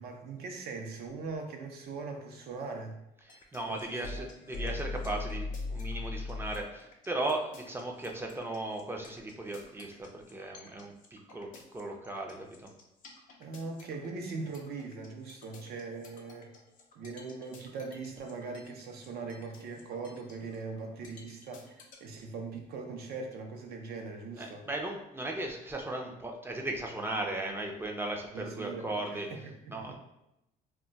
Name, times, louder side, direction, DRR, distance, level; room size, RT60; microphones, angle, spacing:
voice 1, 0.0-2.9 3.7-4.3 13.4-16.5 17.0-24.7 28.3-30.0, right 4 dB, 70° right, 3 dB, 0.6 m, -41 dB
sound 1, 3.3-22.0, left 3 dB, 50° left, 0.6 m, -42 dB
voice 2, 3.3-12.7 24.4-29.3 29.7-29.9, right 2 dB, 15° right, 2 dB, 0.4 m, -37 dB
2.2 x 2.2 x 3.8 m, 0.87 s
cardioid pair, 110°, 17 cm